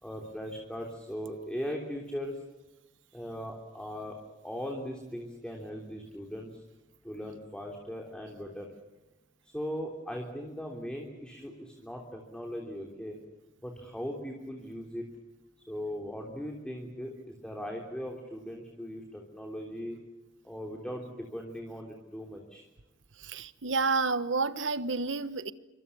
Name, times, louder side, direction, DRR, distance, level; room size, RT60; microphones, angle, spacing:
voice 1, 0.0-2.4 3.1-4.2 4.4-6.6 7.0-8.7 9.4-13.2 13.6-15.0 15.7-20.0 20.4-22.7, equal, 5° left, 1 dB, 3.2 m, -39 dB
voice 2, 23.2-25.5, right 4 dB, 80° right, 13 dB, 1.3 m, -30 dB
27.0 x 25.0 x 7.1 m, 1.1 s
head